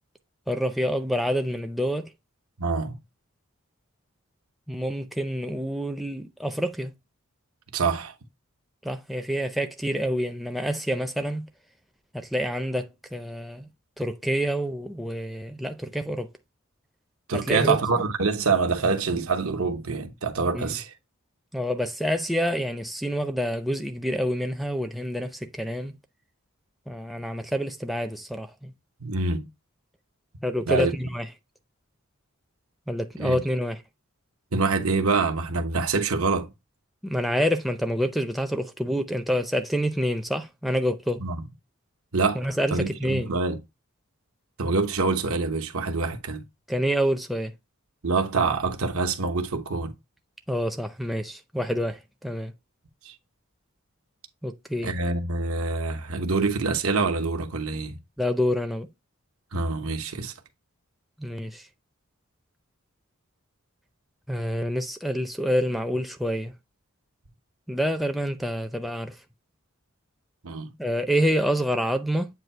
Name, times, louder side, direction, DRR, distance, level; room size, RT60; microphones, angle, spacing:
voice 1, 0.5-2.1 4.7-6.9 8.8-11.5 12.1-13.7 14.0-16.3 17.3-17.8 20.5-20.7 21.5-26.0 26.9-28.7 30.4-31.3 32.9-33.8 37.0-41.2 42.3-43.3 46.7-47.5 50.5-52.5 54.4-54.9 58.2-58.9 61.2-61.7 64.3-66.5 67.7-69.2 70.8-72.3, equal, ahead, 0.4 m, -27 dB
voice 2, 2.6-2.9 7.7-8.1 17.3-20.9 29.0-29.5 30.7-30.9 33.2-33.4 34.5-36.5 41.2-41.4 42.1-42.4 42.7-43.6 44.6-46.4 48.0-49.9 53.0-53.1 54.8-58.0 59.5-60.3 70.4-70.7, right 4 dB, 80° right, 1.0 m, -25 dB
8.0 x 2.7 x 4.3 m
head